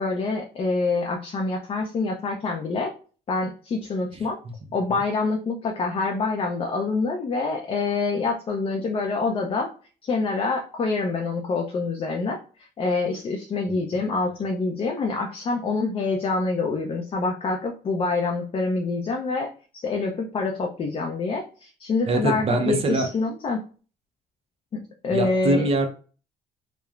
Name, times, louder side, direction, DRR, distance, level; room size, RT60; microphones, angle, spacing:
voice 1, 0.0-2.9 3.3-4.4 4.7-9.7 10.0-12.4 12.8-19.5 19.7-23.6 24.7-25.7, left 3 dB, 35° left, 1 dB, 0.4 m, -26 dB
voice 2, 22.1-23.1 25.1-25.9, right 2 dB, 35° right, 5 dB, 0.5 m, -23 dB
3.1 x 2.0 x 2.3 m, 0.38 s
cardioid pair, 110°, 17 cm